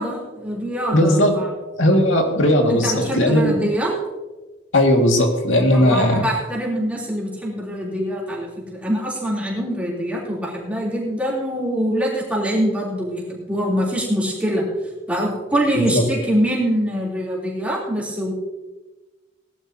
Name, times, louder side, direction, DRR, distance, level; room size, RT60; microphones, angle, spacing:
voice 1, 0.0-1.5 2.7-3.9 5.7-14.7 15.1-18.3, equal, 5° right, -5 dB, 3.3 m, -24 dB
voice 2, 0.9-1.4 1.8-3.5 4.7-6.3 15.7-16.0, left 1 dB, 90° left, 2 dB, 2.1 m, -17 dB
19.0 x 11.5 x 2.8 m, 1.2 s
head